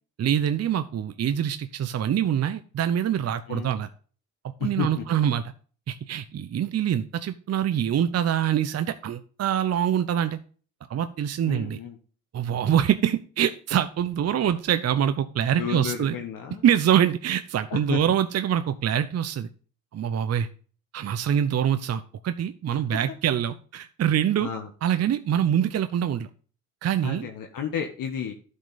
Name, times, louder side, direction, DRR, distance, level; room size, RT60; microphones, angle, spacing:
voice 1, 0.2-3.9 4.6-5.4 5.9-10.4 10.9-11.8 12.3-16.2 16.6-19.5 19.9-20.5 20.9-24.5 24.8-26.3 26.8-27.3, right 9 dB, 35° right, 11 dB, 0.8 m, -24 dB
voice 2, 4.6-5.1 11.4-12.0 15.6-16.6 17.7-18.1 22.7-23.1 24.4-24.7 27.0-28.3, left 8 dB, 50° left, 3 dB, 1.6 m, -32 dB
12.0 x 5.5 x 4.1 m, 0.40 s
hypercardioid pair, 60°, 41 cm